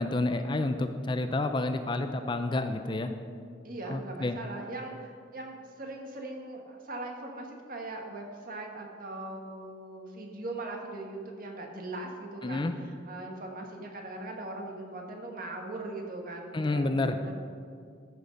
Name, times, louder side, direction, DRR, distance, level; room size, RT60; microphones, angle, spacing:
voice 1, 0.0-3.1 3.9-4.4 12.4-12.7 16.5-17.1, left 2 dB, 25° left, 8 dB, 0.5 m, -29 dB
voice 2, 3.6-17.4, right 2 dB, 50° right, 1 dB, 1.7 m, -40 dB
14.0 x 6.6 x 5.3 m, 2.2 s
head